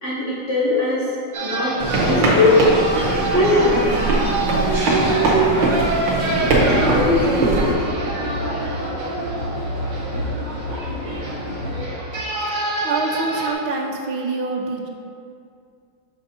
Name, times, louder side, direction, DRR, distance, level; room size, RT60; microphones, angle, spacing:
voice 1, 0.0-1.1 1.4-2.7 3.3-4.0 6.8-7.9, left 2 dB, 45° left, -8 dB, 1.2 m, -20 dB
sound 1, 1.3-13.5, right 2 dB, 45° right, 1.6 m, -27 dB
sound 2, 1.8-7.7, right 2 dB, 65° right, 1.7 m, -20 dB
sound 3, 6.3-11.9, left 1 dB, 85° left, 2.5 m, -29 dB
voice 2, 12.8-14.9, right 4 dB, 85° right, 1 dB, 1.5 m, -26 dB
7.3 x 5.4 x 2.8 m, 2.4 s
omnidirectional pair, 2.2 m